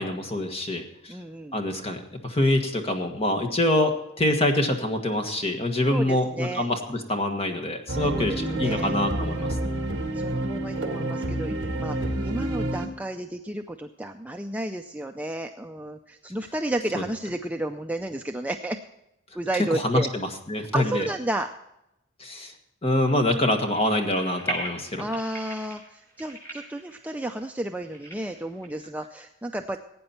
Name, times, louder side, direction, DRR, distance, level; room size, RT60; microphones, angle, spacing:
voice 1, 0.0-1.2 1.5-9.6 16.9-17.0 19.7-21.1 22.2-22.5 22.8-25.0, left 1 dB, 30° left, 4 dB, 1.5 m, -25 dB
voice 2, 1.1-1.6 5.9-6.7 8.1-8.9 10.1-18.8 19.3-20.1 20.6-21.5 25.0-29.8, right 1 dB, 5° right, 4 dB, 0.4 m, -32 dB
sound 1, 7.9-12.9, right 1 dB, 50° right, 1.6 m, -28 dB
sound 2, 23.1-28.7, right 1 dB, 10° left, 6.3 m, -39 dB
18.0 x 8.9 x 4.4 m, 0.85 s
head